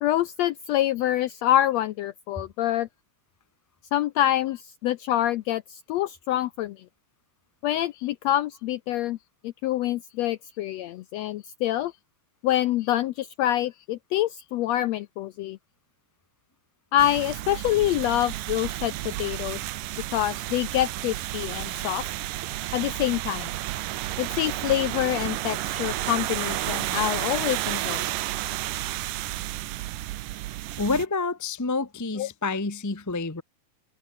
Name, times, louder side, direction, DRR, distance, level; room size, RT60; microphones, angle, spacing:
voice 1, 0.0-2.9 3.9-6.8 7.6-9.2 9.4-11.9 12.4-15.6 16.9-19.6 20.1-22.0 22.7-23.5 24.2-28.1 32.2-32.3, left 13 dB, 80° left, 1.5 m, -26 dB
sound 1, 17.0-31.1, right 16 dB, 90° right, 2.6 m, -31 dB
voice 2, 30.8-33.4, left 3 dB, 20° left, 0.5 m, -28 dB
omnidirectional pair, 3.7 m